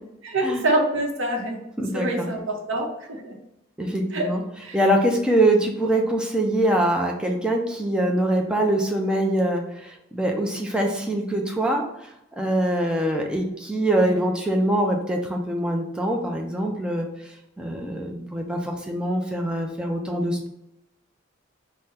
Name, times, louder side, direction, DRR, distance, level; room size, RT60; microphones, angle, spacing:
voice 1, 0.2-1.6 1.9-3.3 4.1-4.3 4.6-4.8 13.9-14.2, right 1 dB, 75° right, 1 dB, 0.8 m, -26 dB
voice 2, 1.8-2.3 3.8-4.4 4.7-11.8 12.4-17.1 17.6-20.5, right 1 dB, 5° right, 1 dB, 0.4 m, -23 dB
3.6 x 2.1 x 4.2 m, 0.85 s
head